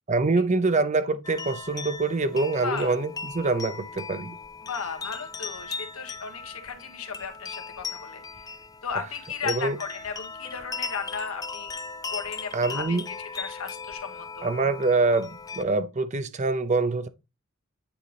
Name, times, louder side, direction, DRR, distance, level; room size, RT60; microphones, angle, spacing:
voice 1, 0.1-4.4 9.4-9.8 12.5-13.1 14.4-17.1, right 3 dB, 35° right, 0.6 m, -25 dB
sound 1, 1.2-15.6, left 4 dB, 15° left, 0.4 m, -38 dB
voice 2, 2.6-2.9 4.6-8.5 8.8-11.7 12.1-14.5, left 6 dB, 80° left, 1.4 m, -35 dB
8.7 x 4.0 x 3.4 m
head